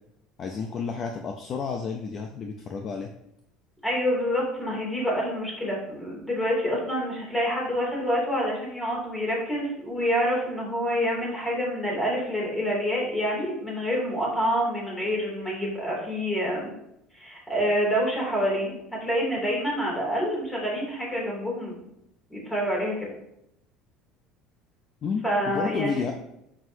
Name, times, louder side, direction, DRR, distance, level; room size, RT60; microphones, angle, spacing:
voice 1, 0.4-3.1 25.0-26.1, left 5 dB, 30° left, 3 dB, 0.6 m, -31 dB
voice 2, 3.8-16.7 17.1-18.7 19.0-21.8 22.3-23.1 25.2-26.0, equal, 10° left, -4 dB, 2.9 m, -27 dB
9.3 x 6.3 x 2.8 m, 0.79 s
cardioid pair, 165°, 0 cm